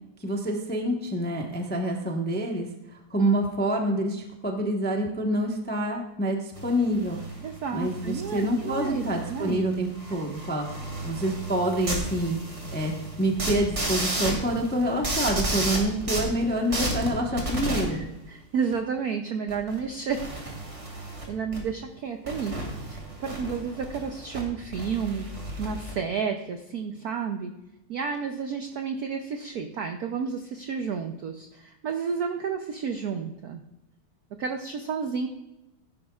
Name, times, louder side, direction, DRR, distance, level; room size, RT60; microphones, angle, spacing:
voice 1, 0.2-7.2 7.7-12.4 12.7-12.9 13.2-18.0, right 1 dB, 10° left, 1 dB, 0.5 m, -27 dB
sound 1, 6.5-17.8 18.7-18.8 19.5-19.8 20.1-21.2 21.5-21.6 22.3-24.4 24.7-25.9, right 1 dB, 35° right, 2.4 m, -33 dB
voice 2, 7.4-9.6 10.1-10.2 17.9-20.3 20.9-25.3 25.6-27.5 27.9-33.6 34.4-35.3, right 6 dB, 75° right, 5 dB, 0.9 m, -31 dB
15.5 x 10.5 x 2.4 m, 0.91 s
omnidirectional pair, 2.4 m